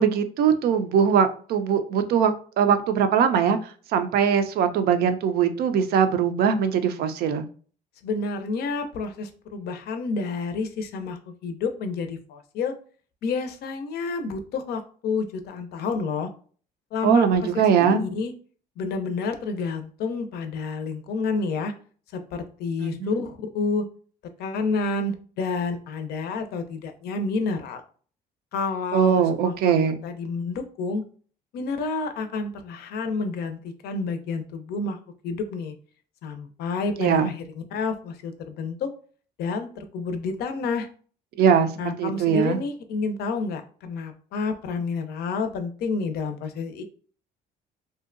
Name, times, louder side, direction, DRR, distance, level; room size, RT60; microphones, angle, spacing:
voice 1, 0.0-7.4 17.0-18.0 22.8-23.1 28.9-30.0 37.0-37.3 41.4-41.7 42.0-42.6, right 7 dB, 70° right, 9 dB, 0.4 m, -21 dB
voice 2, 8.0-12.7 13.2-16.3 16.9-18.3 18.8-21.7 22.1-23.9 24.4-27.8 28.5-29.7 30.0-31.0 31.5-35.0 35.2-35.7 36.2-38.9 39.4-40.9 41.8-46.8, left 4 dB, 70° left, 7 dB, 0.5 m, -29 dB
2.7 x 2.1 x 2.4 m, 0.42 s
cardioid pair, 110°, 17 cm